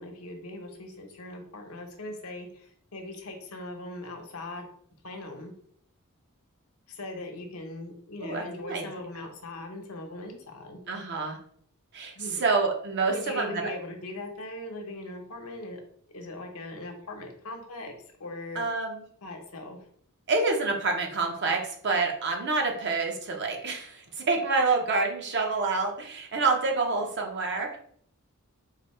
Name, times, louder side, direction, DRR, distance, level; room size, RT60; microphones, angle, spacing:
voice 1, 0.0-4.7 5.0-5.5 6.9-10.8 12.2-12.4 13.1-15.8 16.1-17.9 18.2-18.6 19.2-19.8, left 2 dB, 70° left, 3 dB, 0.9 m, -40 dB
voice 2, 8.2-8.9 10.9-11.4 11.9-13.6 18.5-19.0 20.3-27.8, right 3 dB, 50° right, 2 dB, 0.8 m, -27 dB
4.0 x 2.8 x 4.2 m, 0.62 s
head